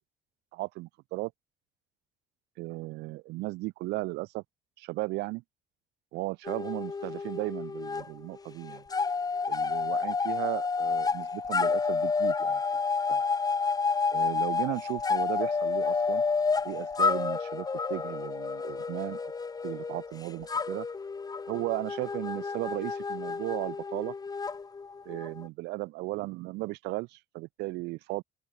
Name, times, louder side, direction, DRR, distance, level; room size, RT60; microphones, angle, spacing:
voice 1, 0.5-1.3 2.6-4.4 4.8-5.4 6.1-8.8 9.5-12.6 13.1-13.2 14.1-16.2 16.6-19.3 19.6-20.9 21.5-24.1 25.1-28.2, right 21 dB, 85° right, 0.5 m, -36 dB
sound 1, 6.5-8.1 8.3-25.4, left 4 dB, 20° left, 0.9 m, -30 dB
open air
cardioid pair, 110°, 17 cm